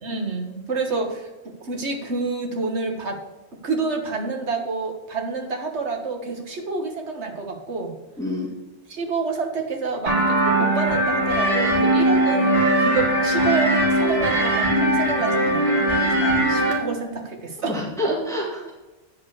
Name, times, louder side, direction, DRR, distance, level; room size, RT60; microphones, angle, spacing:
voice 1, 0.0-1.3 1.6-3.2 3.6-8.0 8.9-17.8, right 3 dB, 65° right, 3 dB, 1.8 m, -28 dB
voice 2, 8.2-8.5 17.6-18.7, equal, 5° left, -3 dB, 1.9 m, -27 dB
sound 1, 10.1-16.7, right 1 dB, 40° right, 2.4 m, -20 dB
9.2 x 5.4 x 6.6 m, 1.1 s
omnidirectional pair, 1.2 m